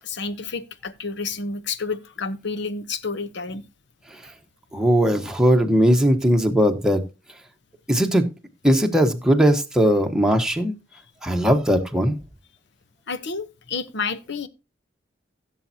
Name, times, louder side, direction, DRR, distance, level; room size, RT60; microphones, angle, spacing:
voice 1, 0.0-3.6 13.1-14.5, left 4 dB, 65° left, 1.0 m, -30 dB
voice 2, 4.7-7.0 7.9-8.3 8.6-10.7 11.2-12.1, equal, 5° right, 1.2 m, -19 dB
16.0 x 7.2 x 2.8 m
head